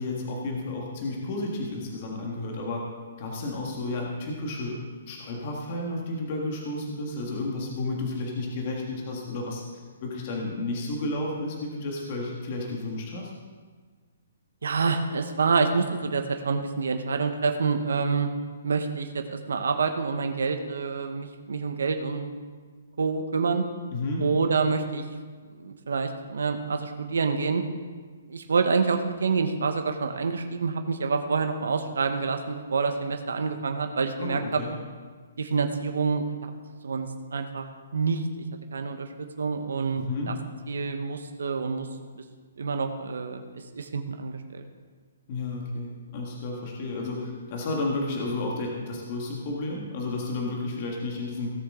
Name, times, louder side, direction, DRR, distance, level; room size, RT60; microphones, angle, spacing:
voice 1, 0.0-2.8 3.2-9.6 10.0-13.3 23.9-24.2 34.2-34.7 39.9-40.3 45.3-51.5, left 2 dB, 30° left, -1 dB, 1.6 m, -32 dB
voice 2, 14.6-18.3 18.6-22.3 23.0-23.6 24.2-25.0 25.5-27.6 28.3-34.6 35.4-36.5 36.8-37.7 37.9-38.3 38.7-40.4 40.7-41.9 42.1-42.2 42.6-43.4 43.7-44.6, right 4 dB, 90° right, 6 dB, 1.1 m, -27 dB
17.5 x 6.9 x 3.8 m, 1.5 s
hypercardioid pair, 170°, 0 cm